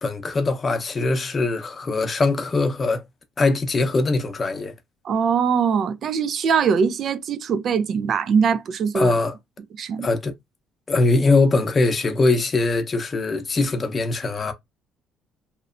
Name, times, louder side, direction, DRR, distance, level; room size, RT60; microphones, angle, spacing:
voice 1, 0.0-3.0 3.4-4.7 8.9-9.3 10.0-10.3 10.9-14.5, left 3 dB, 30° left, 0.7 m, -21 dB
voice 2, 5.0-9.2 9.8-10.1, right 6 dB, 55° right, 0.4 m, -22 dB
3.0 x 2.0 x 2.4 m
cardioid pair, 95°, 0 cm